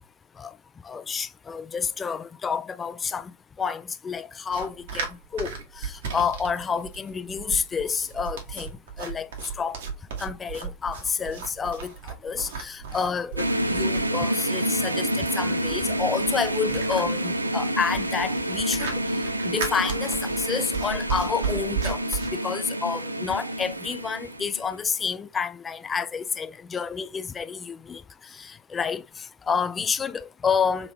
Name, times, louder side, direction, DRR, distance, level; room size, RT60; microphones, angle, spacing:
voice 1, 0.8-9.3 9.6-9.8 10.2-30.9, left 6 dB, 20° left, 0.3 m, -29 dB
sound 1, 4.5-22.3, right 6 dB, 55° right, 1.2 m, -35 dB
sound 2, 13.4-24.7, right 1 dB, 85° right, 0.4 m, -28 dB
3.7 x 3.2 x 2.9 m
figure-of-eight pair, 90°, 0 cm